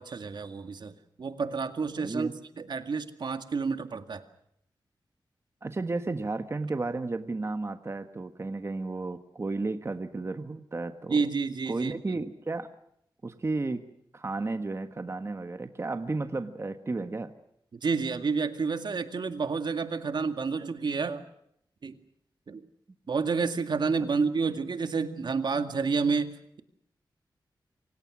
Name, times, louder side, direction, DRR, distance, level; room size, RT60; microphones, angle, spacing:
voice 1, 0.0-2.3 2.6-4.2 11.1-12.2 17.8-21.2 21.8-22.0 22.5-22.6 23.1-26.6, right 4 dB, 65° right, 8 dB, 2.1 m, -29 dB
voice 2, 2.0-2.3 5.6-11.2 11.7-12.7 13.2-13.8 14.1-17.3, right 3 dB, 35° right, 8 dB, 1.5 m, -33 dB
27.5 x 25.0 x 6.3 m, 0.75 s
wide cardioid pair, 105°, 8 cm